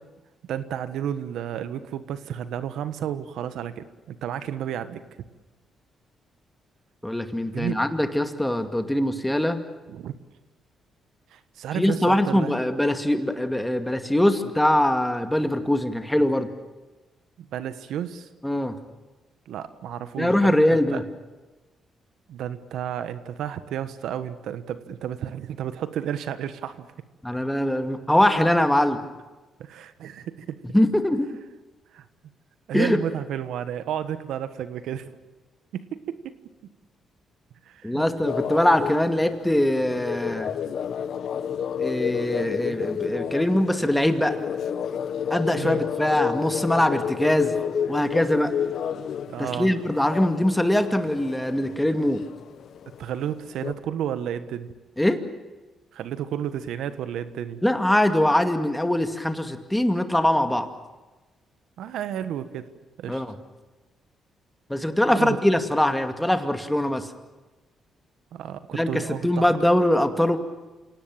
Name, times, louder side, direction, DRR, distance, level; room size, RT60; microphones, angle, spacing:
voice 1, 0.5-5.0 7.5-7.8 9.9-10.1 11.3-12.5 17.4-18.3 19.5-21.0 22.3-26.9 29.6-30.6 31.9-32.0 32.7-35.1 35.7-36.3 37.6-38.0 45.5-45.8 49.3-49.7 53.0-54.7 55.9-57.6 61.8-62.6 63.0-63.2 65.1-65.4 68.3-69.5, right 10 dB, 85° right, 12 dB, 1.3 m, -32 dB
voice 2, 7.0-9.6 11.7-16.5 18.4-18.8 20.2-21.0 27.2-29.0 30.7-31.3 32.7-33.0 37.8-40.5 41.8-44.4 45.3-47.6 47.9-48.5 49.4-52.2 55.0-55.2 57.6-60.7 63.1-63.3 64.7-67.1 68.7-70.4, left 1 dB, 5° left, 7 dB, 2.3 m, -22 dB
sound 1, 38.2-53.7, left 8 dB, 65° left, 1.3 m, -31 dB
27.5 x 18.0 x 9.0 m, 1.2 s
cardioid pair, 90°, 0 cm